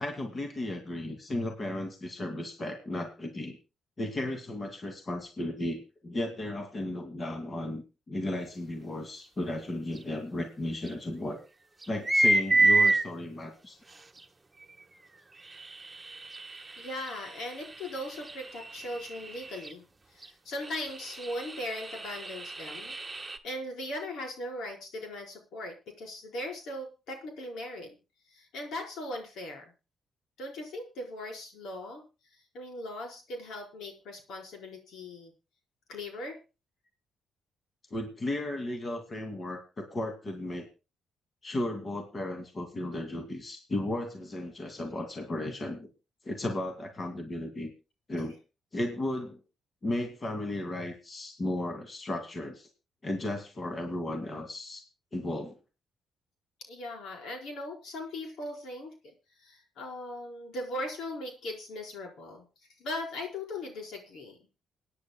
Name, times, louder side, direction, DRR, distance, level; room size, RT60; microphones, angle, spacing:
voice 1, 0.0-3.6 4.0-11.4 11.9-13.8 37.9-40.7 41.4-45.9 46.2-47.7 48.1-48.4 48.7-49.4 49.8-52.7 53.0-54.8 55.1-55.6, left 1 dB, 35° left, 4 dB, 2.6 m, -35 dB
sound 1, 10.0-10.1 10.9-11.0 11.8-13.0 14.2-14.3 15.4-19.7 20.2-20.3 20.6-23.4, right 2 dB, 15° right, 1.5 m, -29 dB
voice 2, 16.8-19.8 20.1-22.9 23.4-28.0 28.3-29.7 30.4-32.0 32.3-35.3 35.9-36.4 56.7-59.1 59.4-62.4 62.8-64.4, left 1 dB, 75° left, 2 dB, 4.9 m, -39 dB
28.5 x 9.8 x 2.3 m, 0.30 s
cardioid pair, 90°, 0 cm